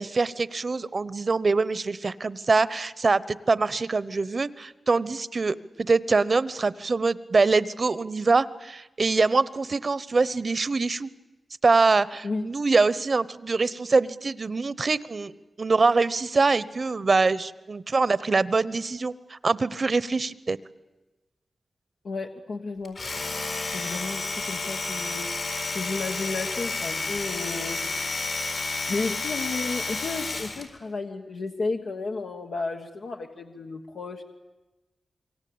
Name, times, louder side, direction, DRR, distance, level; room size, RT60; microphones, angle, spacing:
voice 1, 0.0-11.1 11.6-20.6, right 3 dB, 55° right, 17 dB, 0.9 m, -24 dB
voice 2, 22.0-23.0 23.7-25.3 25.7-27.8 28.9-34.2, left 3 dB, 90° left, 1 dB, 1.4 m, -32 dB
Domestic sounds home sounds, 22.8-30.7, left 3 dB, 75° left, 4.4 m, -31 dB
27.0 x 23.5 x 8.7 m, 1.1 s
cardioid pair, 60°, 0 cm